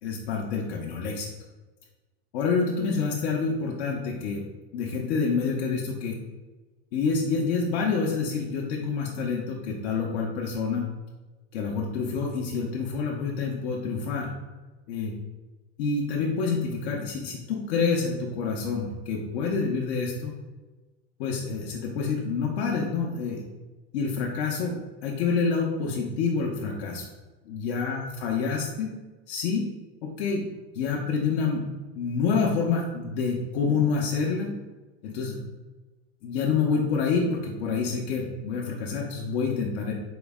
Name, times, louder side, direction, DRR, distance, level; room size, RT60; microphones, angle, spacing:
voice 1, 0.0-1.3 2.3-4.5 4.7-6.2 6.9-10.9 11.5-14.3 14.9-15.1 15.8-20.4 21.2-23.4 23.9-24.8 25.0-27.1 27.5-28.9 29.3-29.7 30.0-30.5 30.7-31.7 31.9-34.5 35.0-35.4 36.2-39.9, left 5 dB, 80° left, -2 dB, 0.7 m, -27 dB
4.6 x 2.0 x 3.5 m, 1.2 s
supercardioid pair, 140°, 32 cm